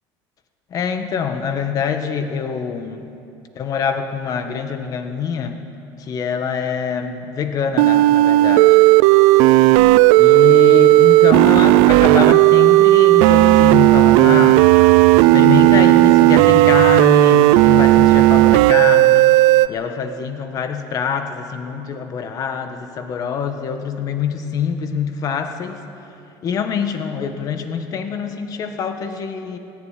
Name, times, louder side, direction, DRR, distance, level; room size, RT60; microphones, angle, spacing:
voice 1, 0.7-3.1 3.5-5.6 6.0-8.8 10.2-14.6 15.3-19.3 19.7-25.8 26.4-29.6, left 7 dB, 40° left, 7 dB, 1.6 m, -24 dB
sound 1, 7.8-19.7, right 18 dB, 85° right, 0.5 m, -12 dB
18.0 x 17.5 x 9.9 m, 2.7 s
cardioid pair, 150°, 9 cm